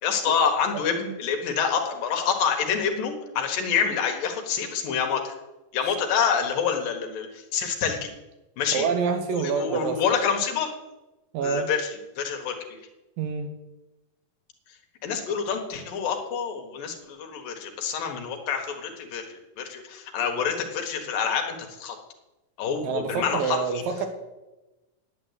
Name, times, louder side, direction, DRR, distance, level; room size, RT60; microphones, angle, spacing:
voice 1, 0.0-5.4 5.7-8.1 8.6-8.8 9.4-10.7 11.4-11.9 12.2-12.8 15.0-22.0 22.6-23.8, left 6 dB, 90° left, 3 dB, 3.2 m, -27 dB
voice 2, 8.7-10.0 11.3-11.7 13.2-13.5 22.8-24.1, right 5 dB, 90° right, 7 dB, 3.1 m, -27 dB
9.7 x 9.4 x 8.1 m, 1.0 s
omnidirectional pair, 3.8 m